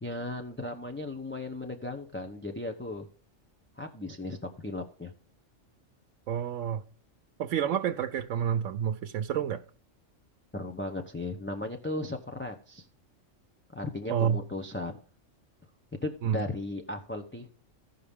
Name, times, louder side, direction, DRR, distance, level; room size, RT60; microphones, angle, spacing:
voice 1, 0.0-3.1 3.8-5.1 10.5-12.9 13.7-15.0 16.0-17.5, left 2 dB, 10° left, 0.6 m, -36 dB
voice 2, 6.3-6.8 7.4-9.6 14.1-14.4 16.2-16.4, right 9 dB, 80° right, 1.0 m, -29 dB
15.5 x 5.6 x 3.5 m
omnidirectional pair, 1.3 m